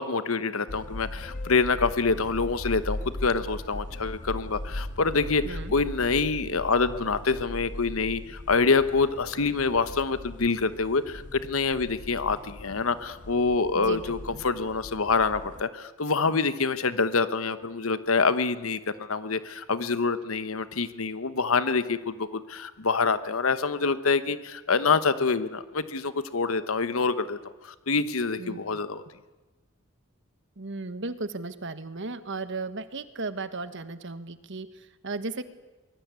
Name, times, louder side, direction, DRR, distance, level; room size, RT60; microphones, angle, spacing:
voice 1, 0.0-27.4 27.6-29.0, left 4 dB, 85° left, 12 dB, 1.1 m, -26 dB
sound 1, 0.7-15.6, left 1 dB, 40° left, 0.8 m, -39 dB
voice 2, 5.4-5.7 13.7-14.4 28.4-28.6 30.6-35.4, right 3 dB, 60° right, 11 dB, 1.5 m, -35 dB
24.0 x 21.5 x 8.3 m, 1.1 s
head